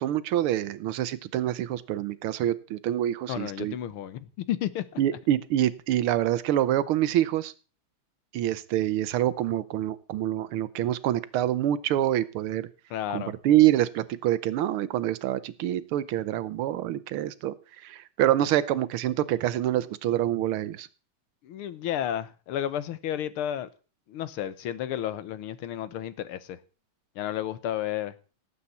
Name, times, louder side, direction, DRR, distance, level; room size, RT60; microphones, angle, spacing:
voice 1, 0.0-3.8 5.0-7.5 8.3-12.7 13.1-17.5 17.8-20.9, right 12 dB, 85° right, 1.7 m, -26 dB
voice 2, 3.3-5.0 12.9-13.3 21.4-23.7 24.1-26.6 27.2-28.1, left 11 dB, 85° left, 1.8 m, -32 dB
18.0 x 8.4 x 4.2 m
omnidirectional pair, 2.3 m